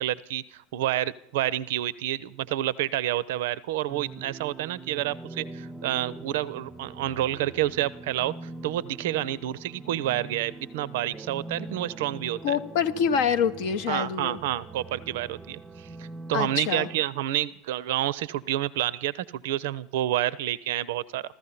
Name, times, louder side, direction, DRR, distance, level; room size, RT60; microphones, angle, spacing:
voice 1, 0.0-8.3 8.6-12.6 13.9-21.2, right 13 dB, 60° right, 20 dB, 0.5 m, -29 dB
sound 1, 3.9-17.0, right 2 dB, 15° right, 0.5 m, -43 dB
voice 2, 12.4-14.4 16.3-16.9, left 7 dB, 55° left, 8 dB, 0.6 m, -26 dB
14.5 x 14.5 x 5.7 m, 0.76 s
figure-of-eight pair, 75°, 0 cm